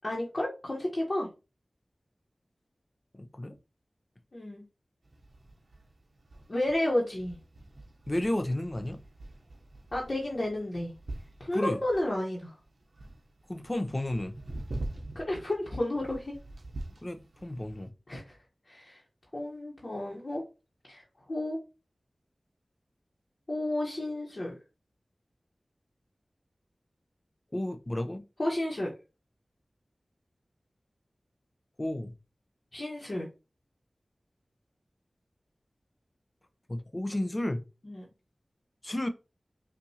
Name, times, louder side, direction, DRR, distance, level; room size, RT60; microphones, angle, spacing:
voice 1, 0.0-1.3 4.3-4.6 6.5-7.4 9.9-10.9 11.4-12.5 15.1-16.4 18.1-18.4 18.7-19.0 19.3-20.4 20.8-21.0 21.3-21.6 23.5-24.6 28.4-28.9 32.7-33.3 37.8-38.1, left 1 dB, 50° left, 1.2 m, -32 dB
sound 1, 5.0-17.9, right 1 dB, 70° right, 0.8 m, -45 dB
voice 2, 8.1-9.0 11.5-11.8 13.5-14.3 17.0-17.9 27.5-28.2 31.8-32.1 36.7-37.6 38.8-39.1, left 1 dB, 30° left, 0.6 m, -32 dB
5.5 x 2.6 x 2.8 m
wide cardioid pair, 60°, 0 cm